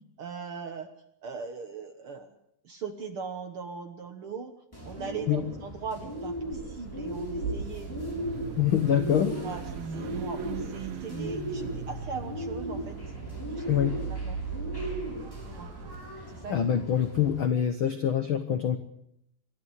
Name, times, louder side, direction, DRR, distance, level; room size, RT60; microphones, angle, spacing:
voice 1, 0.2-0.9 1.2-2.3 2.6-4.5 4.8-8.2 9.4-13.0 13.5-14.4 15.5-15.7 16.3-16.6, right 5 dB, 60° right, 7 dB, 1.5 m, -40 dB
Bird, 4.7-17.4, equal, 5° left, 6.7 m, -37 dB
Car / Idling / Accelerating revving vroom, 6.5-16.0, right 5 dB, 85° right, 3.6 m, -38 dB
voice 2, 8.6-9.4 13.7-13.9 16.5-18.8, left 9 dB, 75° left, 9 dB, 1.1 m, -25 dB
26.5 x 11.5 x 9.6 m, 0.75 s
omnidirectional pair, 3.9 m